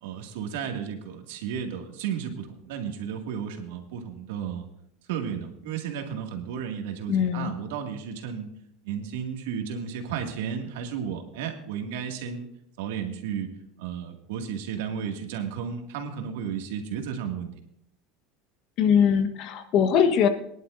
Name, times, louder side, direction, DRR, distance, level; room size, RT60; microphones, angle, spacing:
voice 1, 0.0-4.7 5.1-8.5 8.8-12.5 12.8-13.5 13.8-17.5, right 7 dB, 85° right, 4 dB, 2.1 m, -33 dB
voice 2, 7.1-7.5 18.8-20.3, left 7 dB, 50° left, 8 dB, 1.1 m, -21 dB
22.5 x 11.0 x 2.6 m, 0.73 s
supercardioid pair, 145°, 0 cm